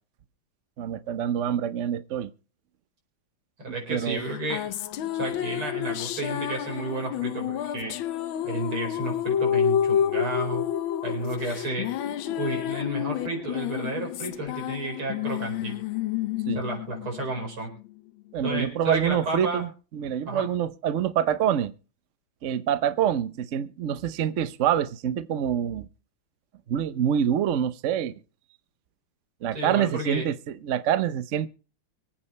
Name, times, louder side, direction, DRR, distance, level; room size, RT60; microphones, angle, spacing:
voice 1, 0.8-2.3 3.9-4.2 16.5-16.6 18.3-21.7 22.4-25.9 26.7-28.1 29.4-30.3 30.6-31.5, right 9 dB, 65° right, 0.7 m, -26 dB
voice 2, 3.6-4.6 5.1-8.0 8.4-10.6 11.0-11.9 12.4-15.8 16.6-17.7 18.4-19.6 20.2-20.5 29.5-30.3, right 2 dB, 85° right, 5.5 m, -32 dB
sound 1, 4.2-17.9, left 10 dB, 75° left, 1.5 m, -29 dB
25.0 x 8.7 x 3.2 m
omnidirectional pair, 2.3 m